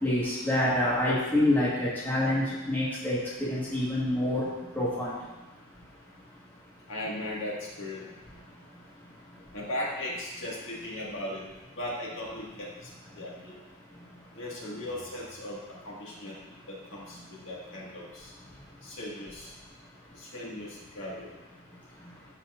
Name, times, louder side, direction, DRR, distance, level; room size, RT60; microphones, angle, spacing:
voice 1, 0.0-3.2 3.5-4.4 4.7-5.2, left 1 dB, 10° left, -9 dB, 1.5 m, -26 dB
voice 2, 6.9-8.0 9.5-11.5 11.8-12.9 13.2-13.6 14.4-15.6 15.8-16.4 16.7-18.3 18.8-19.5 20.2-21.3, left 1 dB, 65° left, -5 dB, 1.9 m, -37 dB
12.5 x 4.2 x 2.5 m, 1.1 s
head